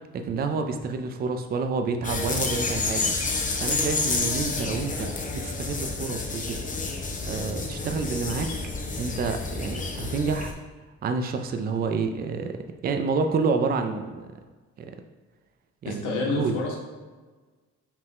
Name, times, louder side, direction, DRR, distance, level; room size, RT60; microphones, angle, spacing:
voice 1, 0.1-3.1 3.6-6.6 7.3-8.5 9.0-10.5 11.0-12.5 12.8-14.3 14.8-14.9 15.8-16.6, right 4 dB, 30° right, 6 dB, 0.4 m, -28 dB
sound 1, 2.0-10.5, left 3 dB, 25° left, 0.6 m, -29 dB
voice 2, 15.9-16.8, left 3 dB, 85° left, -1 dB, 0.9 m, -28 dB
5.6 x 2.2 x 3.4 m, 1.3 s
cardioid pair, 90°, 30 cm